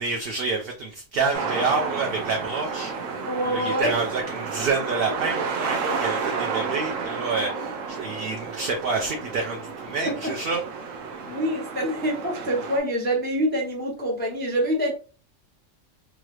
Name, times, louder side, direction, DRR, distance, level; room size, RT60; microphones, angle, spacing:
voice 1, 0.0-3.2 3.5-11.0, right 4 dB, 60° right, 0.7 m, -28 dB
sound 1, 1.3-12.8, right 5 dB, 80° right, 1.1 m, -31 dB
voice 2, 3.3-4.0 10.0-10.3 11.3-14.9, equal, 10° left, 0.5 m, -26 dB
3.0 x 2.4 x 3.1 m
omnidirectional pair, 1.3 m